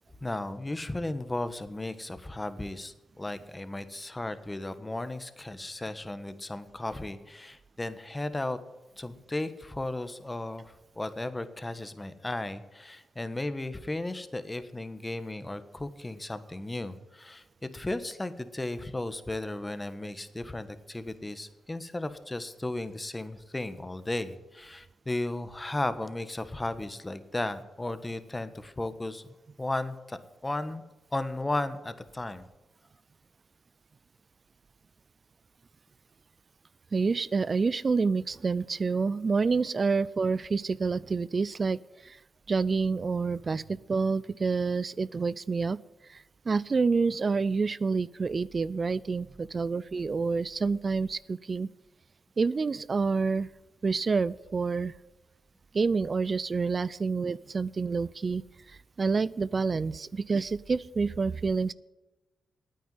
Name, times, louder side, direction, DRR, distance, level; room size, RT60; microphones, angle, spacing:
voice 1, 0.2-8.6 9.0-17.4 17.7-30.8 31.1-32.5, left 2 dB, 20° left, 12 dB, 1.3 m, -35 dB
voice 2, 36.9-42.2 42.5-45.8 46.1-51.7 52.4-53.5 53.8-54.9 55.7-58.4 58.7-61.7, right 4 dB, 45° right, 20 dB, 0.4 m, -28 dB
9.3 x 9.2 x 9.5 m, 1.1 s
cardioid pair, 65°, 0 cm